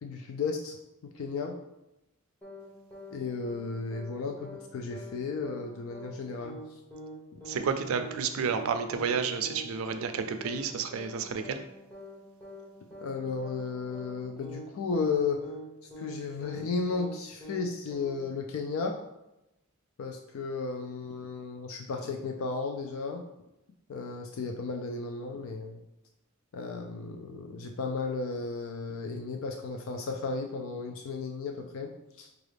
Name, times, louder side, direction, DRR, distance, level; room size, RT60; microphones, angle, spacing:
voice 1, 0.0-0.8 1.0-1.6 3.1-6.6 13.0-15.4 16.0-19.0 20.0-23.2 23.9-25.8 26.5-31.9 32.2-32.3, left 4 dB, 70° left, 3 dB, 0.3 m, -34 dB
sound 1, 2.4-2.7 2.9-3.2 3.4-3.7 3.9-4.2 4.4-4.7 4.9-5.2 5.4-5.7 5.9-6.2 6.4-6.7 6.9-7.2 7.4-7.7 7.9-8.2 8.4-8.7 8.9-9.2 9.4-9.7 9.9-10.2 10.4-10.7 10.9-11.2 11.4-11.7 11.9-12.2 12.4-12.7 12.9-13.2 13.4-13.7 13.9-14.2 14.4-14.7 14.9-15.2 15.4-15.7 15.9-16.2 16.4-16.7 16.9-17.2 17.4-17.7 17.9-18.2, left 1 dB, 10° left, 0.9 m, -44 dB
voice 2, 7.5-11.6, right 6 dB, 70° right, 8 dB, 0.4 m, -31 dB
4.8 x 2.4 x 3.3 m, 0.93 s
head